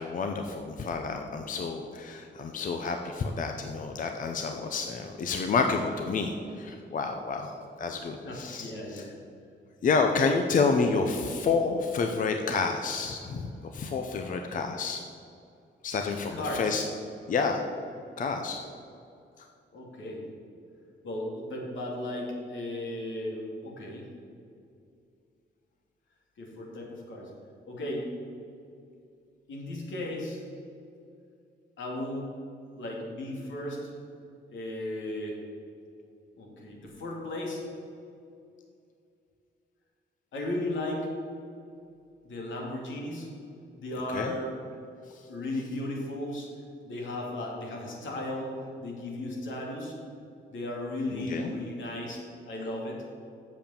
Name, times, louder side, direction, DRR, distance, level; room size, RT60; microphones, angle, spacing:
voice 1, 0.0-9.0 9.8-15.0 15.8-16.8 17.3-17.6 18.2-18.6 44.1-44.3 51.1-51.5, left 4 dB, 45° left, 4 dB, 0.6 m, -29 dB
voice 2, 8.2-9.1 16.3-16.8 19.7-20.2 21.0-24.1 26.4-27.3 27.7-28.1 29.5-30.4 31.8-32.3 32.8-33.9 34.5-35.4 36.4-37.6 40.3-41.1 42.2-43.3 43.8-44.5 45.3-46.5 46.8-49.9 50.5-53.0, left 1 dB, 80° left, -2 dB, 2.6 m, -35 dB
8.1 x 7.1 x 7.1 m, 2.5 s
wide cardioid pair, 180°, 19 cm